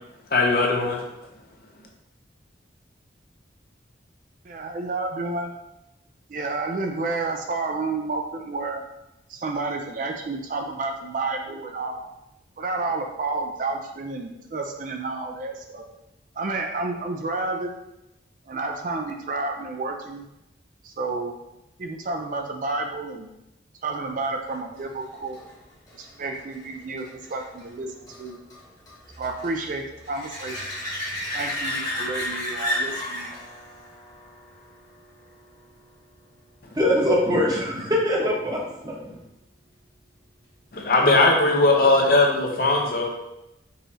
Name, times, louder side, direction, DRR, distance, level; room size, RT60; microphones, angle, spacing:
voice 1, 0.3-1.1 40.7-43.1, left 2 dB, 50° left, 1 dB, 0.6 m, -19 dB
voice 2, 4.4-5.5 6.3-8.8 9.3-12.1 12.6-15.9 16.3-17.8 18.5-20.3 20.8-21.3 21.8-23.3 23.8-25.4 25.9-28.4 29.2-30.6 31.3-33.4, right 3 dB, 45° right, 3 dB, 0.4 m, -30 dB
sound 1, 24.5-35.8 41.4-41.5, left 1 dB, 20° left, 1.1 m, -34 dB
voice 3, 36.7-39.2, equal, 20° right, -2 dB, 0.8 m, -23 dB
5.4 x 3.0 x 2.7 m, 0.91 s
head